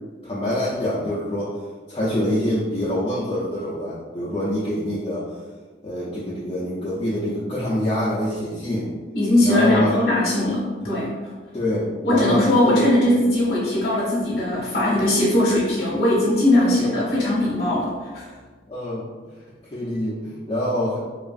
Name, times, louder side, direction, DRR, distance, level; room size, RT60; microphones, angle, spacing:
voice 1, 0.2-1.5 1.9-5.4 5.8-8.9 9.4-10.1 11.5-12.9 16.5-17.1 18.7-19.0 19.7-21.0, left 1 dB, 30° left, -9 dB, 0.4 m, -25 dB
voice 2, 9.1-11.1 12.0-18.3, left 1 dB, 60° left, -7 dB, 0.8 m, -20 dB
2.9 x 2.4 x 2.5 m, 1.4 s
head